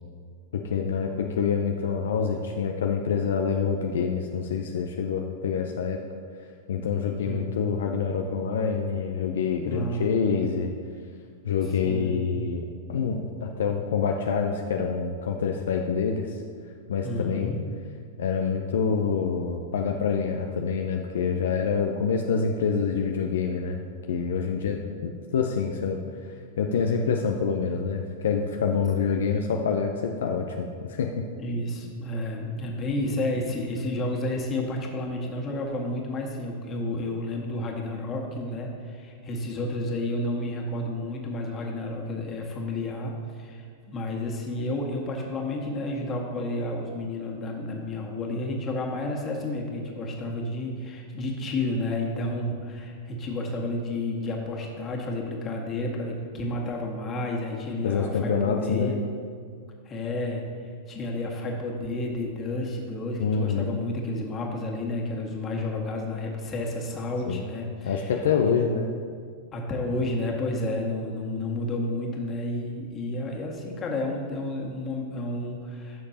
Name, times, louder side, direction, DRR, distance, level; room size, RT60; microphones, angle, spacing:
voice 1, 0.6-6.0 6.7-10.7 11.4-16.4 16.9-17.6 18.2-24.8 25.0-26.0 26.6-31.1 57.8-59.0 63.2-63.7 67.3-67.4 67.9-68.9, left 6 dB, 70° left, 2 dB, 0.6 m, -26 dB
voice 2, 9.7-10.0 11.8-12.2 17.0-17.6 31.4-59.0 59.9-60.4 60.9-68.1 68.4-68.5 69.5-76.1, left 1 dB, 30° left, -1 dB, 1.8 m, -31 dB
15.0 x 6.5 x 2.8 m, 2.1 s
hypercardioid pair, 100°, 0 cm